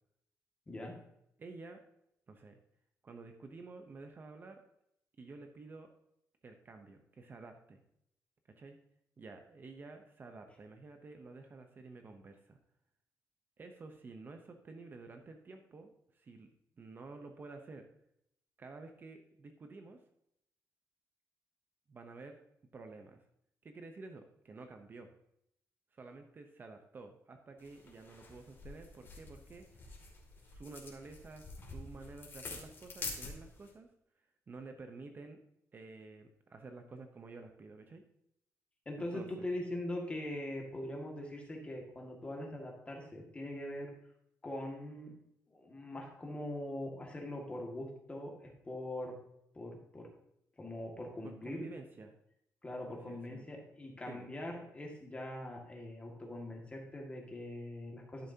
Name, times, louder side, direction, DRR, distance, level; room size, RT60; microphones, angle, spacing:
voice 1, 1.4-1.8 2.3-2.6 3.0-4.6 5.2-5.9 6.4-7.8 8.6-8.8 9.2-12.6 13.6-16.5 16.8-17.9 18.6-20.0 21.9-22.4 22.7-23.2 23.6-25.1 25.9-29.9 30.4-33.9 34.5-35.4 35.7-38.0 39.1-39.5 51.2-52.1 52.9-53.5 54.1-54.3, right 3 dB, 35° right, 5 dB, 0.8 m, -51 dB
sound 1, 27.6-33.7, left 3 dB, 40° left, 2.6 m, -47 dB
voice 2, 38.9-43.9 44.4-45.1 45.5-49.1 49.5-50.1 50.6-51.7 52.6-58.3, left 1 dB, 20° left, 0 dB, 2.0 m, -42 dB
12.5 x 6.9 x 2.8 m, 0.77 s
cardioid pair, 130°, 6 cm